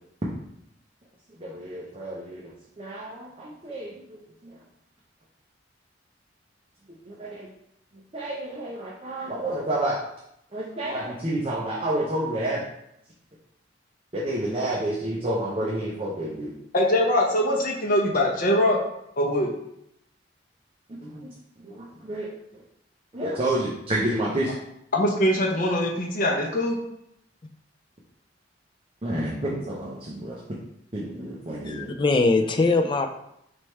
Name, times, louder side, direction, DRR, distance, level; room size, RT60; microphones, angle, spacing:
voice 1, 1.4-4.6 7.0-7.5 8.1-10.0 10.5-12.6 14.1-16.5 21.0-21.3 21.6-22.3 22.5-22.6 23.1-24.6 29.0-30.4 30.9-31.9, right 1 dB, 30° right, -5 dB, 0.6 m, -30 dB
voice 2, 16.7-18.8 19.2-19.5 24.9-26.8, left 1 dB, 50° left, -1 dB, 0.8 m, -22 dB
voice 3, 31.6-33.1, left 3 dB, 25° left, 5 dB, 0.3 m, -21 dB
4.3 x 3.4 x 3.2 m, 0.78 s
head